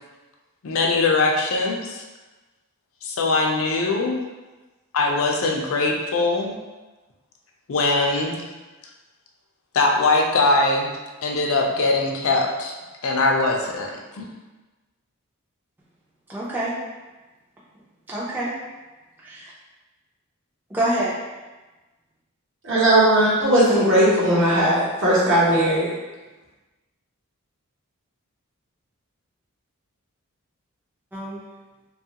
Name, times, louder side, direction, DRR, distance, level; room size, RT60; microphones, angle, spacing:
voice 1, 0.6-2.0 3.0-4.2 4.9-6.5 7.7-8.4 9.7-10.9 11.2-12.7 13.0-13.9 14.2-14.3, left 3 dB, 65° left, 0 dB, 0.4 m, -21 dB
voice 2, 16.3-16.8 18.1-18.6 19.2-19.5 20.7-21.1 31.1-31.4, right 1 dB, 10° right, -7 dB, 0.4 m, -26 dB
voice 3, 22.6-25.9, right 1 dB, 55° right, -6 dB, 0.9 m, -18 dB
2.9 x 2.3 x 2.8 m, 1.2 s
head